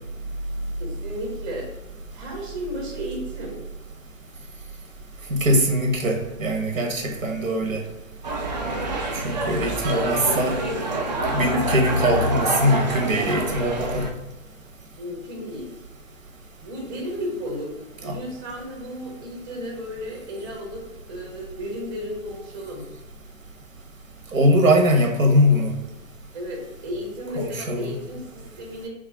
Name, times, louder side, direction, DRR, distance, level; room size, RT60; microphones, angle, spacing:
voice 1, 0.8-1.7 2.1-3.6 15.0-15.7 16.6-22.9 26.3-28.9, equal, 20° right, -1 dB, 0.9 m, -34 dB
voice 2, 5.3-7.8 9.1-10.6 11.3-14.1 18.0-18.2 24.3-25.7 27.4-27.9, equal, 80° right, 2 dB, 1.1 m, -21 dB
sound 1, 8.2-14.1, right 1 dB, 35° right, 0.4 m, -26 dB
3.3 x 2.4 x 4.4 m, 1.1 s
hypercardioid pair, 140°, 39 cm